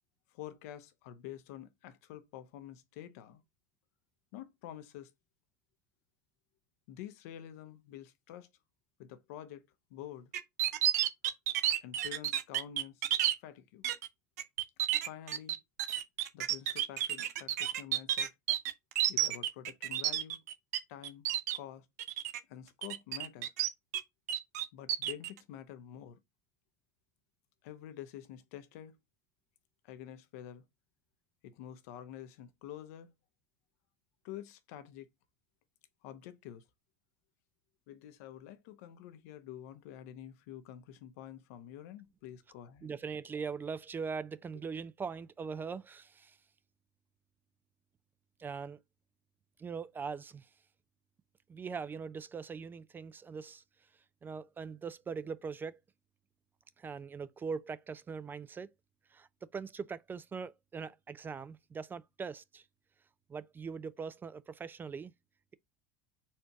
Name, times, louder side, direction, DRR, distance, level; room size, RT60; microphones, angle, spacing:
voice 1, 0.3-3.4 4.3-5.1 6.9-8.5 9.0-10.3 11.8-13.0 13.4-13.9 15.0-15.6 16.3-18.3 19.1-20.4 20.9-21.3 21.5-21.9 22.5-23.5 24.7-26.2 27.6-29.0 29.8-30.6 31.4-33.1 34.2-35.1 36.0-36.6 37.9-42.9, left 11 dB, 70° left, 0.7 m, -48 dB
sound 1, 10.3-13.3 13.8-14.1 14.4-20.8 21.0-21.6 22.0-22.4 22.8-24.0 24.3-25.3, right 12 dB, 80° right, 0.5 m, -31 dB
voice 2, 42.8-46.4 48.4-48.8 49.6-50.5 51.5-53.6 54.2-55.8 56.8-58.7 59.1-62.6 63.3-65.1, right 5 dB, 25° right, 0.4 m, -41 dB
4.3 x 2.6 x 4.6 m
hypercardioid pair, 90°, 9 cm